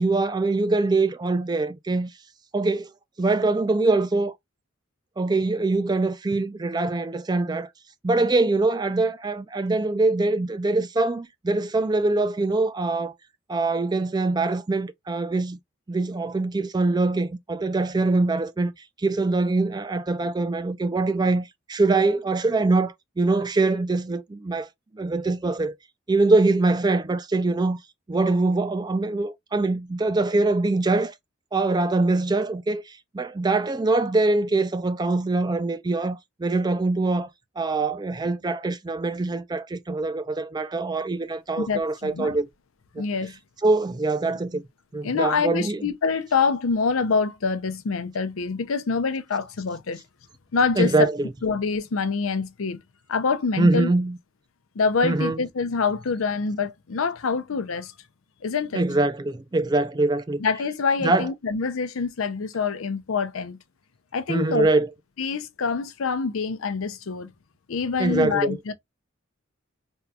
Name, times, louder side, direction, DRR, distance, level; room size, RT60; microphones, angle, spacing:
voice 1, 0.0-2.1 2.5-2.9 3.2-4.3 5.2-7.7 8.0-13.1 13.5-15.6 15.9-18.7 19.0-24.7 24.9-25.7 26.1-27.8 28.1-31.1 31.5-37.3 37.6-42.5 42.9-43.0 43.6-44.6 44.9-45.9 50.8-51.3 53.6-54.2 55.0-55.4 58.7-60.4 61.0-61.3 64.3-64.9 68.0-68.6, right 3 dB, 20° right, 0.4 m, -23 dB
voice 2, 41.6-42.4 43.0-43.3 45.0-50.0 50.5-51.1 51.4-52.8 53.1-53.9 54.8-57.9 58.4-58.8 60.4-63.6 64.1-64.7 65.2-67.3 67.7-68.7, left 5 dB, 90° left, 0.6 m, -26 dB
3.6 x 2.3 x 2.7 m
head